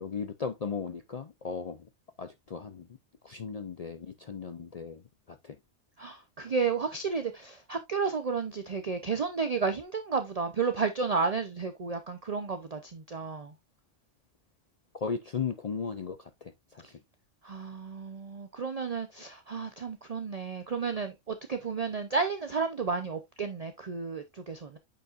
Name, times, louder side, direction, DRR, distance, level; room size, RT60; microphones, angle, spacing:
voice 1, 0.0-1.9 2.2-2.9 3.2-5.6 14.9-17.0, left 5 dB, 50° left, 0.4 m, -37 dB
voice 2, 6.0-13.5 17.4-24.8, right 5 dB, 40° right, 0.6 m, -32 dB
8.7 x 5.4 x 2.4 m
omnidirectional pair, 1.3 m